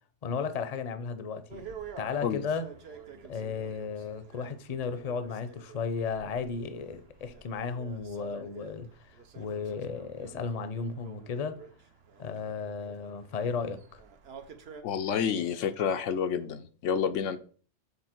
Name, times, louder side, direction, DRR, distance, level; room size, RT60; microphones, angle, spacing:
voice 1, 0.2-1.7 2.0-2.7 3.3-11.6 12.2-14.0, left 5 dB, 40° left, 0.7 m, -34 dB
sound 1, 1.5-14.8, right 6 dB, 60° right, 1.0 m, -49 dB
voice 2, 14.8-17.4, left 7 dB, 90° left, 1.0 m, -29 dB
6.9 x 4.1 x 4.4 m
omnidirectional pair, 1.3 m